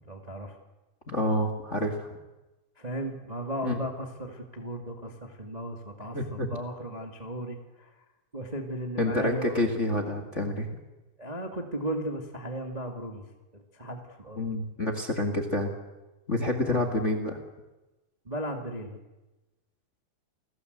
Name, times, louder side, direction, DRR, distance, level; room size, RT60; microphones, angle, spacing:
voice 1, 0.1-0.6 2.8-7.9 8.3-9.6 11.2-13.2 13.5-14.4 16.6-16.9 18.2-19.0, right 1 dB, 60° right, 3 dB, 0.4 m, -36 dB
voice 2, 1.1-2.1 3.6-3.8 6.1-6.6 9.0-10.7 14.4-15.7 16.3-17.4, left 1 dB, 35° left, 4 dB, 1.1 m, -28 dB
29.0 x 19.5 x 8.1 m, 1.1 s
omnidirectional pair, 5.1 m